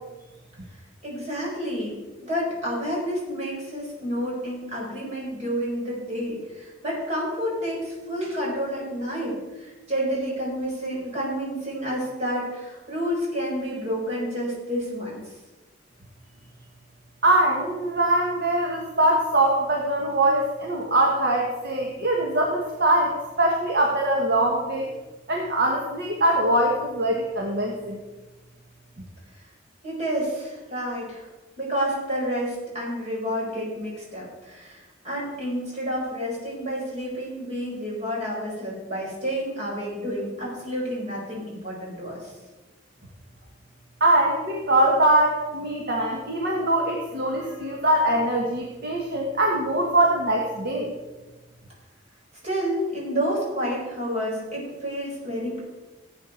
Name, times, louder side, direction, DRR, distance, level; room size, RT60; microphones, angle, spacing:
voice 1, 1.0-1.9 2.2-15.3 29.8-31.3 31.6-42.3 52.4-55.6, equal, 35° right, -4 dB, 4.9 m, -29 dB
voice 2, 17.2-24.9 25.3-28.0 44.0-50.9, right 1 dB, 55° right, -1 dB, 1.4 m, -22 dB
14.5 x 8.6 x 4.4 m, 1.2 s
head